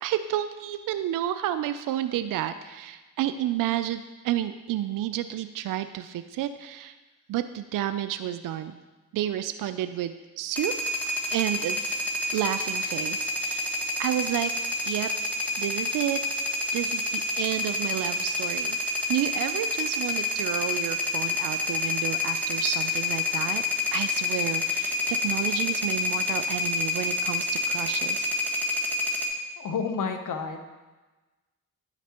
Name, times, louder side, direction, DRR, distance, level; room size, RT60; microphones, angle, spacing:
voice 1, 0.0-7.0 7.3-8.7 9.1-10.7 11.3-12.0 12.3-13.7 14.0-14.5 14.9-15.1 15.6-16.2 16.7-18.8 19.1-23.6 23.9-28.3, right 12 dB, 65° right, 10 dB, 0.5 m, -30 dB
sound 1, 10.5-29.3, left 3 dB, 5° left, 1.5 m, -28 dB
voice 2, 29.6-30.6, left 5 dB, 60° left, 6 dB, 0.8 m, -30 dB
9.7 x 5.9 x 2.9 m, 1.2 s
supercardioid pair, 45°, 35 cm